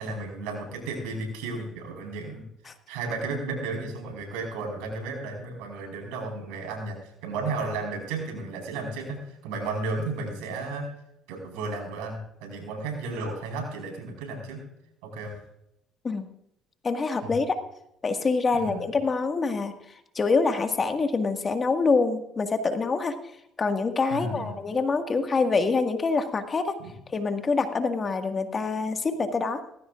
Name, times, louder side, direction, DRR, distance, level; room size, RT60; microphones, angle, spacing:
voice 1, 0.0-2.4 2.9-10.9 11.3-14.6 15.0-15.3 17.2-17.3 18.5-18.8 24.1-24.6 26.8-26.9, right 3 dB, 90° right, 2 dB, 4.7 m, -33 dB
voice 2, 16.8-17.6 18.0-19.7 20.2-23.1 23.6-26.8 27.1-29.6, left 4 dB, 35° left, 6 dB, 1.8 m, -25 dB
18.5 x 15.0 x 2.5 m, 0.79 s
supercardioid pair, 80°, 0 cm